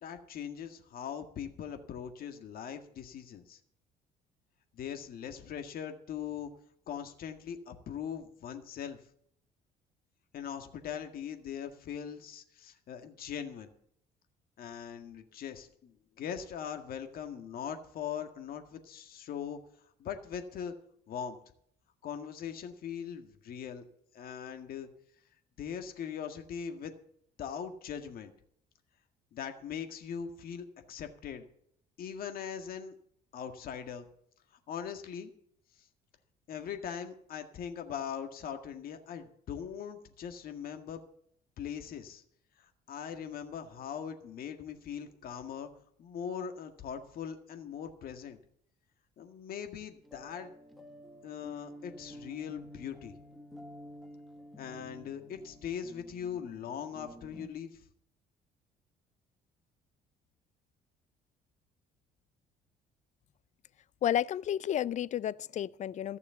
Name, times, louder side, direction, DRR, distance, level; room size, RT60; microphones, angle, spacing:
voice 1, 0.0-3.6 4.7-6.5 6.9-9.0 10.3-13.7 14.6-19.6 20.0-20.7 21.1-21.4 22.0-23.9 24.1-24.9 25.6-26.9 27.4-28.3 29.3-31.5 32.0-32.9 33.3-34.1 34.7-35.3 36.5-41.0 41.6-42.2 42.6-45.7 46.0-48.4 49.2-50.5 51.2-53.2 54.6-57.8, left 8 dB, 60° left, 1.9 m, -41 dB
sound 1, 50.0-57.5, equal, ahead, 1.5 m, -51 dB
voice 2, 64.0-66.2, left 10 dB, 45° left, 0.5 m, -31 dB
14.5 x 6.8 x 8.2 m
cardioid pair, 110°, 17 cm